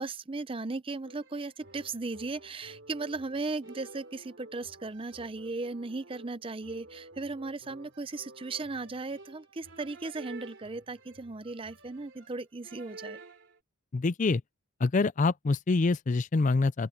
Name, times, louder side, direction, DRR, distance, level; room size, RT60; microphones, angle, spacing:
voice 1, 0.0-13.2, right 3 dB, 25° right, 0.6 m, -37 dB
sound 1, 1.0-13.6, right 2 dB, 55° right, 3.2 m, -51 dB
voice 2, 13.9-14.4 14.8-16.9, left 3 dB, 35° left, 0.4 m, -26 dB
open air
head